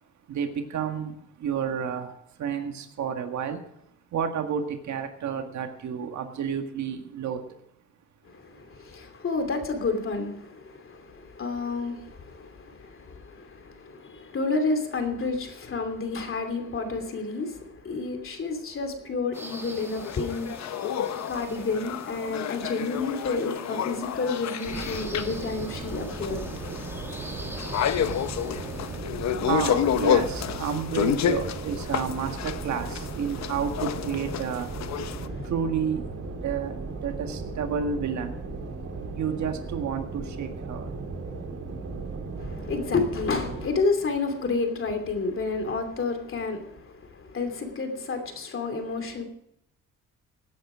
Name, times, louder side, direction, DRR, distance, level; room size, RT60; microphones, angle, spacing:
voice 1, 0.3-3.6 4.1-7.5 8.5-8.6 29.1-34.7 35.4-38.4 39.1-40.9, right 7 dB, 70° right, 1.8 m, -31 dB
voice 2, 8.2-20.8 21.3-26.4 35.0-35.5 42.4-49.2, left 3 dB, 45° left, 2.8 m, -30 dB
sound 1, 19.3-35.3, left 9 dB, 65° left, 0.8 m, -30 dB
sound 2, 19.3-29.0, right 1 dB, 10° right, 1.3 m, -44 dB
sound 3, 24.6-43.7, right 3 dB, 50° right, 3.5 m, -36 dB
17.5 x 9.3 x 5.0 m
cardioid pair, 90°, 30 cm